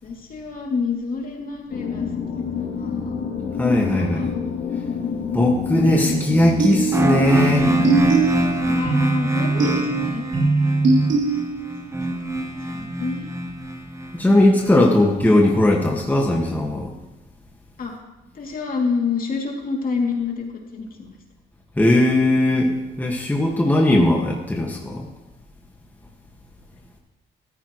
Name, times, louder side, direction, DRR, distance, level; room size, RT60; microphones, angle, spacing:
voice 1, 0.0-2.1 2.6-4.3 8.4-10.3 11.3-11.5 12.2-13.3 17.8-17.9 18.3-20.4 20.7-21.2, left 4 dB, 45° left, 0 dB, 2.7 m, -28 dB
sound 1, 1.7-8.0, left 6 dB, 80° left, 2.8 m, -27 dB
voice 2, 3.6-4.3 5.3-7.7 14.1-16.9 21.8-25.1, left 1 dB, 10° left, -1 dB, 1.7 m, -18 dB
sound 2, 5.9-11.8, right 4 dB, 65° right, 3.3 m, -22 dB
sound 3, 6.9-14.7, right 1 dB, 15° right, 1.1 m, -25 dB
14.5 x 14.0 x 3.1 m, 1.0 s
cardioid pair, 90°, 20 cm